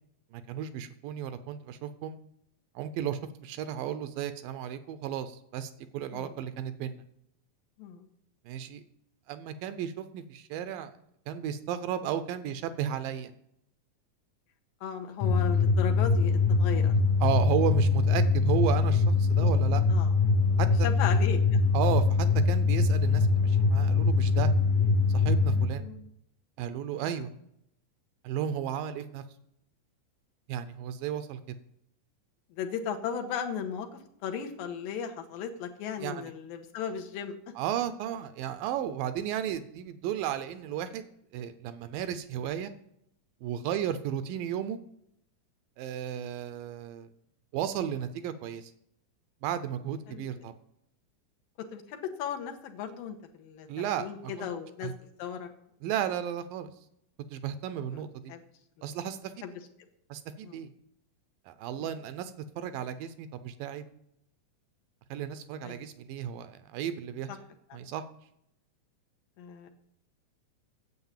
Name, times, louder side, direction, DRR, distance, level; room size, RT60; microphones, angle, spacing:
voice 1, 0.3-2.2 2.8-7.0 8.5-8.8 9.3-11.0 11.3-13.3 17.2-19.8 20.6-20.9 21.7-24.5 25.1-25.9 26.6-27.3 28.2-29.2 30.5-31.4 36.0-36.3 37.6-41.1 41.3-42.7 43.4-44.8 45.8-47.1 47.5-48.7 49.4-50.6 53.7-54.5 54.8-54.9 55.8-56.7 57.3-58.3 58.8-59.3 60.1-60.7 61.5-63.9 65.1-67.3 67.7-68.0, right 9 dB, 80° right, 11 dB, 2.2 m, -34 dB
voice 2, 14.8-16.9 19.4-19.5 19.9-20.1 20.8-21.4 25.8-26.1 32.6-37.3 50.1-50.3 51.7-54.9 55.2-55.5 57.9-58.0 58.3-58.4 58.8-58.9 59.4-59.5 60.4-60.6 61.8-61.9 65.6-65.9 69.4-69.7, left 8 dB, 80° left, 4 dB, 2.6 m, -36 dB
sound 1, 15.2-25.7, left 4 dB, 60° left, 2.0 m, -23 dB
9.6 x 7.9 x 7.3 m, 0.77 s
omnidirectional pair, 4.2 m